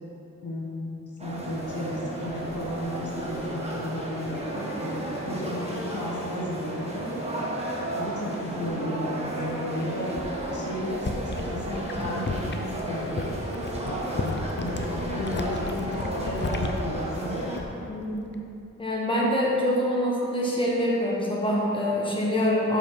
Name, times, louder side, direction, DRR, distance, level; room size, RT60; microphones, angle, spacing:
voice 1, 0.4-7.1 7.9-10.1 10.5-13.3 14.1-17.5, left 1 dB, 65° left, -4 dB, 1.4 m, -34 dB
sound 1, 1.2-17.6, right 1 dB, 20° right, 1.3 m, -33 dB
sound 2, 10.9-17.9 18.2-18.6, left 3 dB, 35° left, 0.5 m, -34 dB
voice 2, 17.9-18.3 18.8-22.8, equal, 15° left, -5 dB, 1.4 m, -25 dB
6.8 x 5.4 x 4.7 m, 2.7 s
wide cardioid pair, 80°, 32 cm